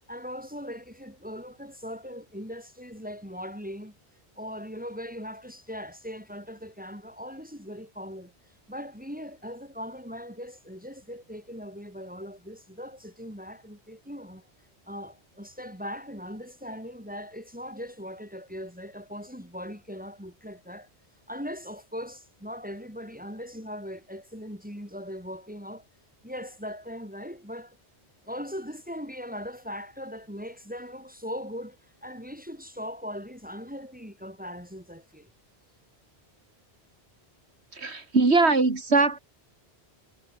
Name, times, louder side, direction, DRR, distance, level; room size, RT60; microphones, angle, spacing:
voice 1, 0.1-4.0 4.4-8.3 8.7-14.5 14.9-20.9 21.3-25.8 26.2-27.8 28.2-35.3, equal, 10° right, 7.1 m, -39 dB
voice 2, 37.7-39.2, right 3 dB, 85° right, 3.1 m, -21 dB
omnidirectional pair, 1.1 m